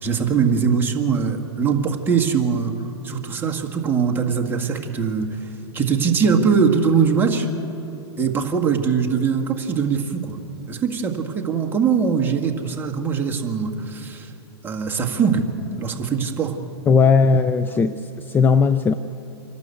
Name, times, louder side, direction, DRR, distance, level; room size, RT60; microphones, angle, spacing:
voice 1, 0.0-2.8 3.0-5.3 5.7-7.5 8.2-10.4 10.7-14.3 14.6-15.5 15.8-16.6, right 6 dB, 15° right, 2 dB, 1.8 m, -21 dB
voice 2, 16.9-18.9, left 5 dB, 15° left, 11 dB, 0.4 m, -17 dB
26.0 x 12.0 x 8.3 m, 2.8 s
hypercardioid pair, 130°, 14 cm